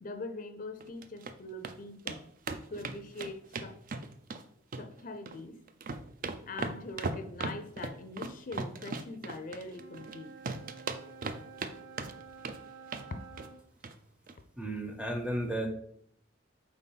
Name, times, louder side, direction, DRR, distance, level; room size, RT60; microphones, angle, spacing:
voice 1, 0.0-2.3 2.7-3.8 4.8-5.6 6.4-10.3 13.1-13.4, left 2 dB, 45° left, 8 dB, 0.5 m, -42 dB
sound 1, 0.8-1.3 1.6-1.7 2.1-2.2 2.5-4.4 4.7-5.4 5.7-10.2 10.4-11.7 12.0-12.6 12.9-13.1 13.4-13.5 13.8-13.9 14.3-14.4, right 3 dB, 45° right, 0.5 m, -37 dB
Wind instrument woodwind instrument, 9.7-13.6, right 5 dB, 85° right, 1.0 m, -50 dB
voice 2, 14.6-15.7, right 1 dB, 5° right, 6 dB, 0.6 m, -33 dB
4.4 x 4.2 x 5.4 m, 0.67 s
head